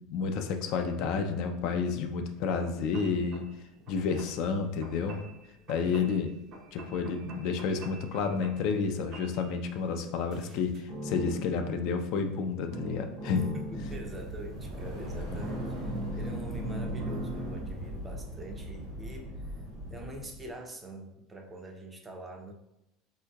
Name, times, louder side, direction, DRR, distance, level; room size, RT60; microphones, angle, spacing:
voice 1, 0.1-3.5 3.9-5.2 5.7-6.3 6.7-13.5 15.3-15.4, left 5 dB, 65° left, 6 dB, 0.3 m, -30 dB
sound 1, 2.4-2.6 2.9-3.4 3.8-4.4 4.8-5.4 5.7-6.2 6.5-8.8 9.1-9.5 10.3-12.4 12.7-14.8 15.4-17.6, equal, 55° right, 0.7 m, -40 dB
voice 2, 5.8-6.4 13.3-19.5 19.9-22.5, right 2 dB, 20° right, 2 dB, 0.5 m, -44 dB
sound 2, 13.5-20.5, equal, 75° right, 1.3 m, -40 dB
3.7 x 2.8 x 2.2 m, 0.86 s
supercardioid pair, 110°, 0 cm